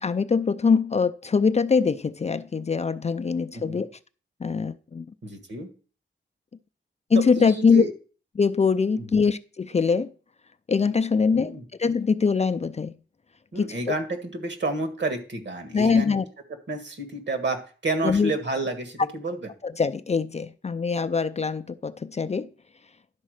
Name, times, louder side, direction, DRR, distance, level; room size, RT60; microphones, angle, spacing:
voice 1, 0.0-3.9 4.4-5.0 7.1-7.8 8.4-10.1 10.7-13.0 13.6-14.0 15.7-16.2 18.0-18.3 19.6-22.5, left 5 dB, 35° left, 0.4 m, -23 dB
voice 2, 5.2-5.7 7.1-7.9 9.0-9.2 11.3-11.6 13.5-16.1 16.7-17.6 17.8-19.5, right 2 dB, 60° right, 1.7 m, -30 dB
11.0 x 4.1 x 6.4 m
wide cardioid pair, 130°, 20 cm